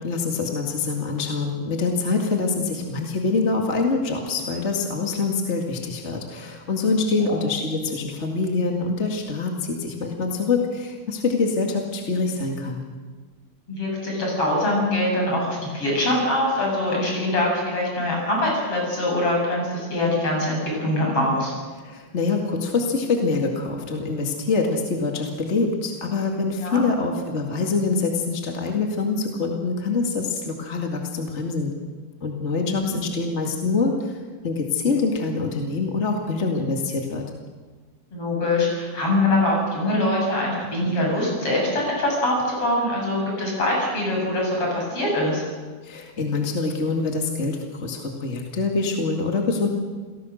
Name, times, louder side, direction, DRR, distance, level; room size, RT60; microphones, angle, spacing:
voice 1, 0.0-12.9 21.8-31.7 32.2-37.2 45.8-49.7, left 4 dB, 25° left, 1 dB, 2.0 m, -25 dB
voice 2, 13.7-21.5 26.6-26.8 32.7-32.8 38.1-45.4, left 1 dB, 50° left, -2 dB, 8.8 m, -23 dB
28.5 x 18.0 x 6.4 m, 1.4 s
omnidirectional pair, 3.4 m